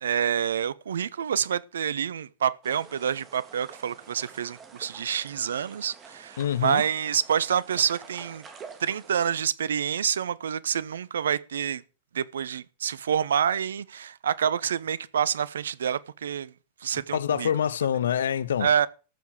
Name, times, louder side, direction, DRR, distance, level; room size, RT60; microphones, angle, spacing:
voice 1, 0.0-8.4 8.8-11.8 12.1-16.5 16.8-17.5 18.6-18.9, right 8 dB, 65° right, 0.7 m, -27 dB
sound 1, 2.6-9.4, right 5 dB, 25° right, 2.8 m, -48 dB
voice 2, 6.4-6.8 17.1-18.7, left 9 dB, 65° left, 0.8 m, -26 dB
14.0 x 7.0 x 6.1 m
figure-of-eight pair, 90°, 0 cm